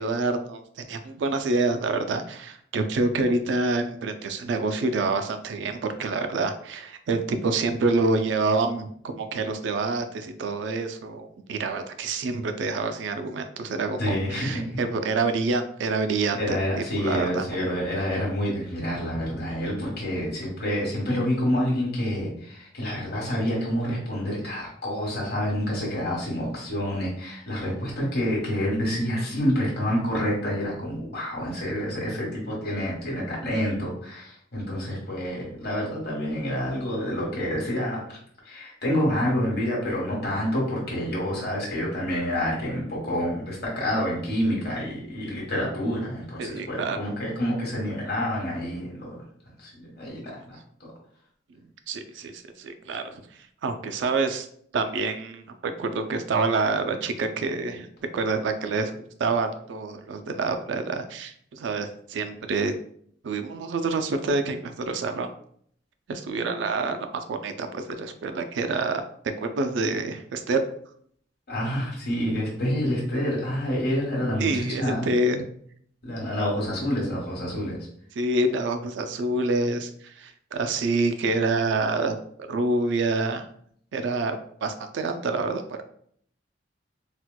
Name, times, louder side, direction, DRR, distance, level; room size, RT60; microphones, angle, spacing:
voice 1, 0.0-16.6 17.0-17.7 46.4-47.0 51.9-53.0 53.6-54.5 54.7-57.9 58.1-58.9 59.2-62.8 63.2-65.3 66.1-69.0 69.4-70.6 74.4-75.5 78.2-82.2 82.5-83.5 83.9-85.8, right 3 dB, 70° right, 8 dB, 0.3 m, -27 dB
voice 2, 14.0-14.6 16.3-38.2 38.4-49.2 49.6-50.6 71.5-75.1 76.0-77.8, equal, 55° left, -3 dB, 1.3 m, -28 dB
4.2 x 2.2 x 2.2 m, 0.63 s
head